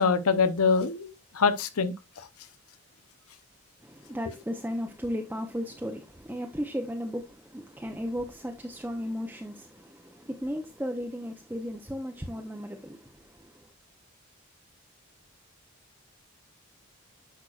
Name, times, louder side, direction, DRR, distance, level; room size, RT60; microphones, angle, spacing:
voice 1, 0.0-2.3, left 5 dB, 85° left, 0.8 m, -25 dB
voice 2, 3.8-13.7, equal, 10° right, 0.7 m, -35 dB
10.0 x 6.3 x 2.5 m
head